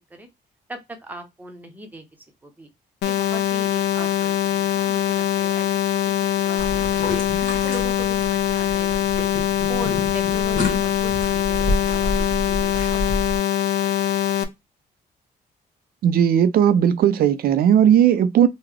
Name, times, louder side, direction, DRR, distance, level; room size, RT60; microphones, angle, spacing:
voice 1, 0.7-2.0 2.4-2.7 3.0-5.8 6.1-7.2 7.6-9.3 9.7-13.2, right 1 dB, 10° right, 0.8 m, -39 dB
sound 1, 3.0-14.4, left 11 dB, 85° left, 0.6 m, -22 dB
sound 2, 6.6-13.4, left 2 dB, 50° left, 1.4 m, -29 dB
voice 2, 16.0-18.5, right 9 dB, 65° right, 0.5 m, -16 dB
3.7 x 2.1 x 3.2 m
cardioid pair, 140°, 17 cm